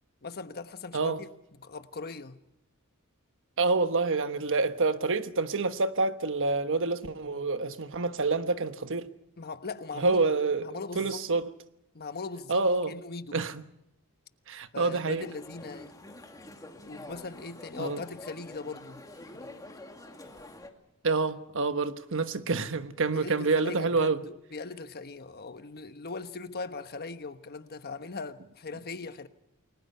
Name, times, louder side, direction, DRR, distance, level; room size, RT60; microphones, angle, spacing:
voice 1, 0.2-1.3 1.6-2.4 9.4-10.2 10.6-11.2 11.9-13.4 14.7-15.9 16.8-19.0 19.3-19.5 23.1-29.3, left 3 dB, 45° left, 1.2 m, -40 dB
voice 2, 3.6-9.1 9.9-10.7 10.9-11.5 12.5-12.9 13.3-13.6 14.5-15.3 17.8-18.0 21.0-24.2, right 3 dB, 60° right, 1.2 m, -27 dB
sound 1, 15.2-20.7, left 2 dB, 15° left, 2.2 m, -47 dB
29.5 x 21.0 x 5.7 m
head